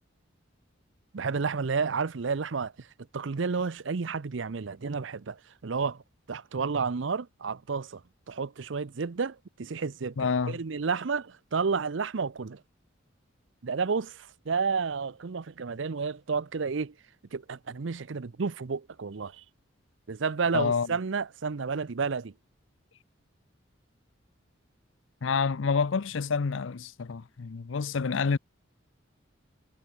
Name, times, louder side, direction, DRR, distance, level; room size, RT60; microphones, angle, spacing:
voice 1, 1.1-2.9 3.1-6.0 6.3-8.0 8.3-12.6 13.6-16.9 17.3-19.4 20.1-22.3, right 5 dB, 70° right, 0.6 m, -31 dB
voice 2, 10.2-10.6 20.5-21.0 25.2-28.4, left 5 dB, 75° left, 0.6 m, -28 dB
head